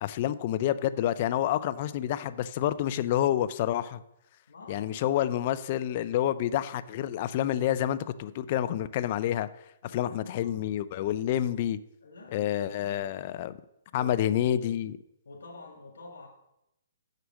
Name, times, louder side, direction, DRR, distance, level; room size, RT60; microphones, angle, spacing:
voice 1, 0.0-4.0 4.7-9.5 9.9-11.8 12.3-13.5 13.9-15.0, left 11 dB, 35° left, 15 dB, 0.4 m, -28 dB
voice 2, 4.5-4.9 9.8-10.7 12.0-13.4 13.9-14.3 15.3-16.3, left 3 dB, 85° left, 3 dB, 1.8 m, -48 dB
6.6 x 6.2 x 6.2 m, 0.83 s
hypercardioid pair, 160°, 0 cm